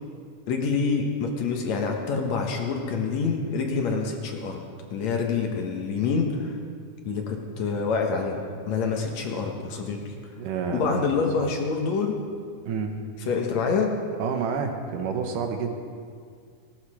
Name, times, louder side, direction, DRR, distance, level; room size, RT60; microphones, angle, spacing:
voice 1, 0.5-4.6 4.9-6.5 7.0-10.1 10.7-12.2 13.3-13.9, left 5 dB, 65° left, 2 dB, 2.3 m, -26 dB
voice 2, 10.4-11.1 11.4-11.5 12.7-13.0 14.2-15.8, right 6 dB, 80° right, 4 dB, 2.7 m, -29 dB
18.0 x 12.0 x 4.9 m, 2.1 s
omnidirectional pair, 3.7 m